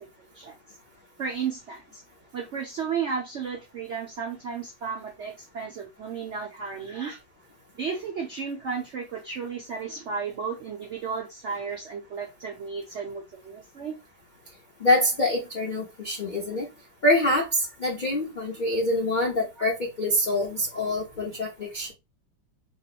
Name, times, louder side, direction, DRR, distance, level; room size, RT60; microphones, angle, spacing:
voice 1, 1.2-2.0 2.3-7.2 7.8-14.0 19.6-19.7, right 6 dB, 80° right, 0.6 m, -33 dB
voice 2, 14.8-16.7 17.0-21.9, left 1 dB, 90° left, 0.4 m, -25 dB
3.0 x 2.9 x 2.4 m
omnidirectional pair, 2.0 m